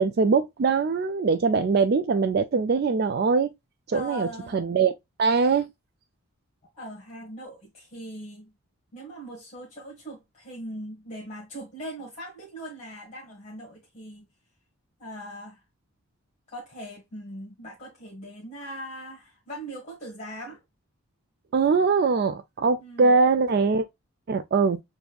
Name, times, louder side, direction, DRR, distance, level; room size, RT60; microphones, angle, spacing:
voice 1, 0.0-3.5 3.9-4.9 5.2-5.7 21.5-23.9 24.3-24.8, right 4 dB, 45° right, 0.3 m, -22 dB
voice 2, 3.9-4.6 6.7-8.5 8.9-14.2 15.0-15.6 16.5-20.6 22.8-23.2, right 1 dB, 30° left, 1.5 m, -40 dB
6.9 x 2.7 x 2.3 m
head